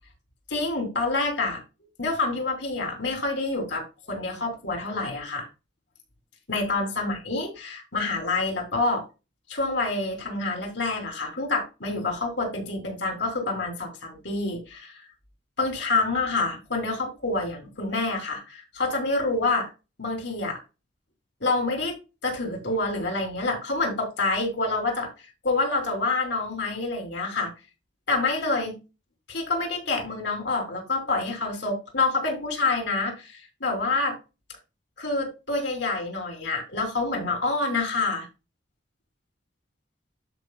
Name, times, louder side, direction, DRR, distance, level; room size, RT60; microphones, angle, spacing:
voice 1, 0.5-1.6 2.0-5.5 6.5-9.0 9.5-15.1 15.6-19.7 20.0-20.6 21.4-25.1 25.4-27.5 28.1-28.8 29.3-34.2 35.0-38.3, left 3 dB, 65° left, 3.3 m, -27 dB
12.5 x 5.4 x 2.3 m
head